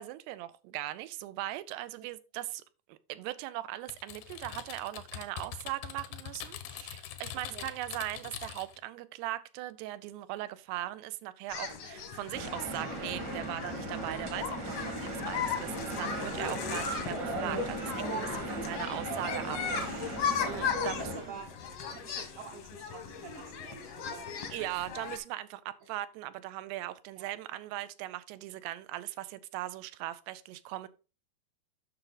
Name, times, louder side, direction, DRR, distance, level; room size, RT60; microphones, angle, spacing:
voice 1, 0.0-2.6 2.9-20.2 20.5-21.3 24.5-30.9, right 15 dB, 90° right, 2.7 m, -39 dB
Typing, 3.9-8.8, left 11 dB, 80° left, 2.9 m, -43 dB
sound 1, 11.5-25.2, left 6 dB, 65° left, 1.5 m, -37 dB
sound 2, 12.3-21.2, right 1 dB, 50° right, 1.3 m, -37 dB
voice 2, 18.5-18.8 20.4-21.5 21.9-24.3 25.8-25.9 27.1-27.3, right 5 dB, 65° right, 1.9 m, -48 dB
9.7 x 5.9 x 3.9 m
omnidirectional pair, 4.6 m